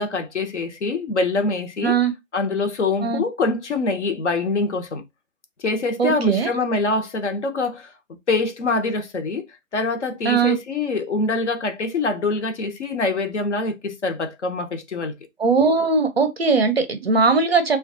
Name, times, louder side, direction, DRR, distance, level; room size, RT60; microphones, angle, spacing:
voice 1, 0.0-2.0 2.3-5.0 5.6-7.9 8.3-9.4 9.7-15.1, left 3 dB, 55° left, 0.7 m, -24 dB
voice 2, 1.8-2.1 3.0-3.2 6.0-6.5 10.2-10.6 15.4-17.8, right 4 dB, 50° right, 0.5 m, -19 dB
2.2 x 2.2 x 2.6 m
figure-of-eight pair, 155°, 42 cm